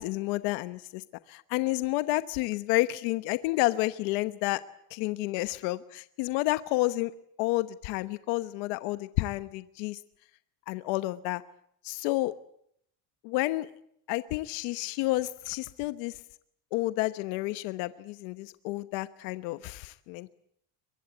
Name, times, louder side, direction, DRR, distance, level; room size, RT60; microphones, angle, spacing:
voice 1, 0.0-4.6 4.9-7.1 7.4-10.0 10.7-11.4 11.8-12.3 13.2-13.7 14.1-16.2 16.7-20.3, left 19 dB, 80° left, 13 dB, 1.1 m, -30 dB
23.0 x 22.5 x 9.0 m, 0.70 s
cardioid pair, 155°, 42 cm